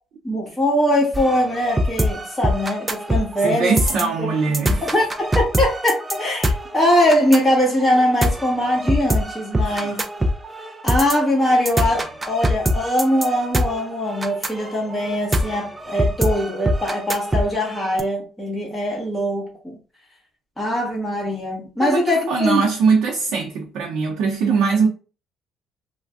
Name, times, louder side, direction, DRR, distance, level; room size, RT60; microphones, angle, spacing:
voice 1, 0.2-4.3 4.8-10.0 10.8-19.8 20.6-22.7, equal, 5° left, 1.1 m, -21 dB
sound 1, 1.1-18.0, equal, 15° right, 0.3 m, -24 dB
voice 2, 3.4-4.8 9.6-10.0 21.8-24.9, right 5 dB, 70° right, 0.6 m, -21 dB
3.3 x 2.1 x 2.5 m
cardioid pair, 165°, 0 cm